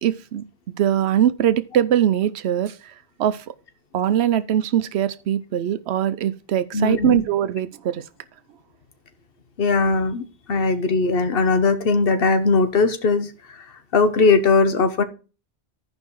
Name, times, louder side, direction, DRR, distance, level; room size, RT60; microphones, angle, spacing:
voice 1, 0.0-0.4 0.8-2.9 3.2-3.4 3.9-8.0, right 10 dB, 80° right, 0.9 m, -21 dB
voice 2, 6.7-7.2 9.6-10.2 10.5-13.3 13.9-15.0, left 4 dB, 60° left, 1.1 m, -19 dB
15.5 x 5.3 x 3.0 m
omnidirectional pair, 1.1 m